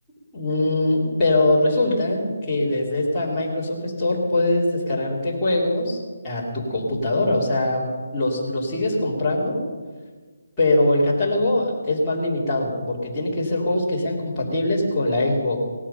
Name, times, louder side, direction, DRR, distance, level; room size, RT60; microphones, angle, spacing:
voice 1, 0.3-6.0 6.2-7.8 8.1-9.6 10.6-15.6, left 2 dB, 5° left, -12 dB, 3.0 m, -22 dB
18.0 x 13.0 x 5.6 m, 1.4 s
hypercardioid pair, 180°, 0 cm